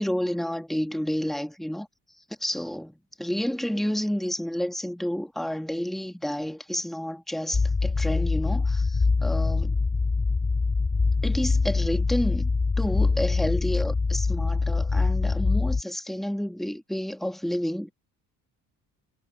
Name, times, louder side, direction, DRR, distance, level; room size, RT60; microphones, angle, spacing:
voice 1, 0.0-1.9 2.4-9.8 11.2-12.5 12.8-17.9, equal, ahead, 1.6 m, -30 dB
sound 1, 7.5-15.8, left 4 dB, 20° left, 3.4 m, -24 dB
cardioid pair, 115°, 34 cm